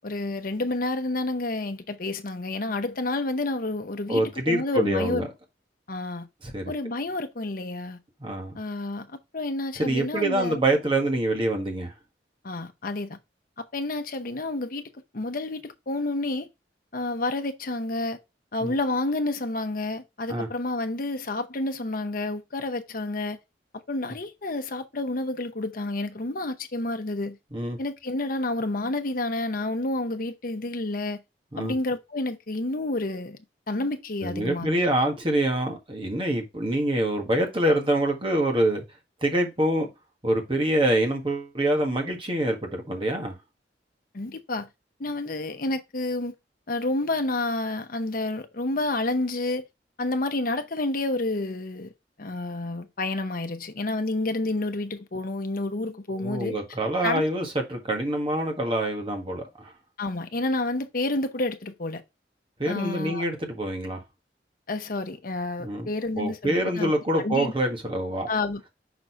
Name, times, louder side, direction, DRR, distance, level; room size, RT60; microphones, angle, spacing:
voice 1, 0.0-5.3 5.9-6.3 6.7-8.0 8.5-10.6 12.4-13.2 13.6-16.5 16.9-18.2 18.5-23.4 23.9-27.4 27.8-31.2 31.6-33.4 33.7-34.8 44.1-44.7 45.0-46.3 46.7-49.6 50.0-51.9 52.2-56.6 57.0-57.2 60.0-62.0 62.6-63.3 64.7-67.5 68.3-68.7, left 2 dB, 55° left, 0.9 m, -29 dB
voice 2, 4.1-5.3 6.5-6.7 8.2-8.6 9.8-11.9 18.6-18.7 20.3-20.5 27.5-27.8 31.5-31.7 34.2-38.8 39.2-39.9 40.2-43.4 56.2-59.7 62.6-64.0 65.6-65.9 66.2-68.3, right 1 dB, 30° right, 1.6 m, -25 dB
6.1 x 3.9 x 4.5 m
head